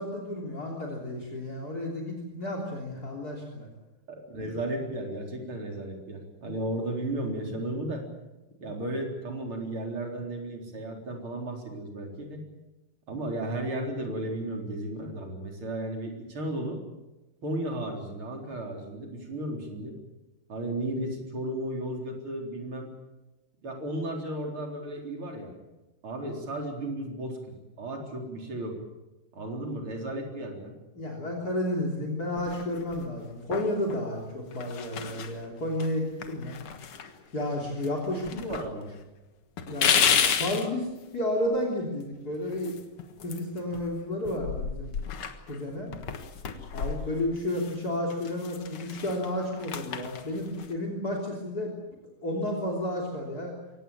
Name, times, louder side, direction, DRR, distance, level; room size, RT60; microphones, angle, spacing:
voice 1, 0.0-3.7 31.0-37.0 37.3-38.3 39.7-42.7 43.2-44.9 45.5-46.0 46.7-51.7 52.2-53.5, left 1 dB, 45° left, 1 dB, 3.8 m, -32 dB
voice 2, 4.1-8.0 8.6-12.4 13.1-16.8 17.4-19.9 20.5-22.9 23.6-25.5 26.0-28.8 29.3-30.7 38.1-38.9, right 1 dB, 70° right, 2 dB, 5.0 m, -34 dB
sound 1, 32.4-33.1 33.5-34.0 34.5-35.4 35.8-35.9 36.2-37.5 37.8-38.7 38.9-39.0 39.6-40.7 42.5-43.9 44.2-47.8 48.1-50.7, left 7 dB, 80° left, 2.4 m, -31 dB
23.0 x 18.5 x 8.7 m, 1.0 s
omnidirectional pair, 2.4 m